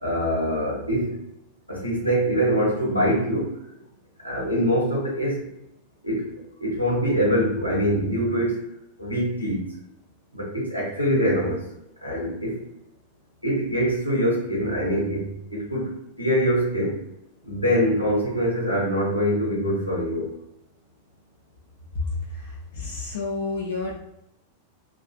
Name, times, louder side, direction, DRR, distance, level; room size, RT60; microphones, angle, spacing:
voice 1, 0.0-1.2 1.7-3.5 4.2-5.5 6.0-6.3 6.6-8.6 9.0-9.7 10.3-11.6 12.0-12.6 13.4-15.9 16.2-17.0 17.4-20.3, equal, 90° left, -4 dB, 0.8 m, -24 dB
voice 2, 21.9-24.0, left 3 dB, 60° left, -3 dB, 0.4 m, -30 dB
2.4 x 2.3 x 2.4 m, 0.80 s
figure-of-eight pair, 90°, 0 cm